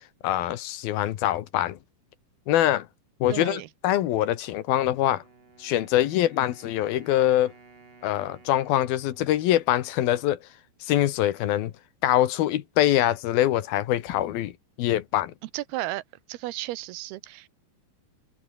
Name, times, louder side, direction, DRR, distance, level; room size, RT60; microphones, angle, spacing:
voice 1, 0.2-1.8 2.5-2.9 3.2-5.2 5.6-7.5 8.0-10.4 10.8-11.7 12.0-14.5 14.8-15.3, left 13 dB, 75° left, 3.1 m, -24 dB
voice 2, 3.3-3.7 15.5-16.0 16.3-17.5, right 17 dB, 85° right, 2.9 m, -33 dB
Wind instrument woodwind instrument, 4.7-10.6, right 4 dB, 60° right, 8.4 m, -55 dB
omnidirectional pair, 4.4 m